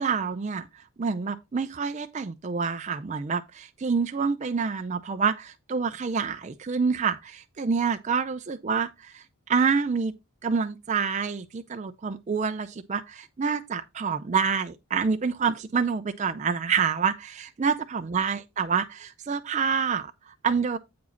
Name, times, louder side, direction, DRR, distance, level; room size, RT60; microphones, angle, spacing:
voice 1, 0.0-10.1 10.4-20.8, right 5 dB, 30° right, 0.4 m, -27 dB
8.3 x 4.7 x 4.3 m
head